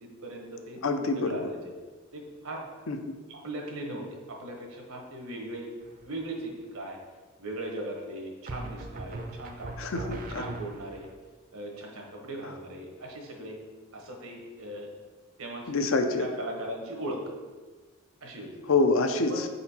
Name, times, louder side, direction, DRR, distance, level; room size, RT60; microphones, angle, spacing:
voice 1, 0.0-0.8 1.1-1.7 2.1-2.7 3.3-5.7 6.0-7.0 7.4-11.1 11.5-13.6 13.9-14.9 15.4-15.8 16.2-17.2 18.2-18.6 19.3-19.5, right 1 dB, 85° right, 1 dB, 1.2 m, -39 dB
voice 2, 0.8-1.4 2.9-3.0 9.8-10.4 15.7-16.3 18.7-19.5, left 3 dB, 70° left, 7 dB, 0.5 m, -26 dB
sound 1, 5.8-6.3 8.5-11.1, right 2 dB, 40° right, 0.5 m, -40 dB
5.2 x 4.2 x 4.2 m, 1.3 s
head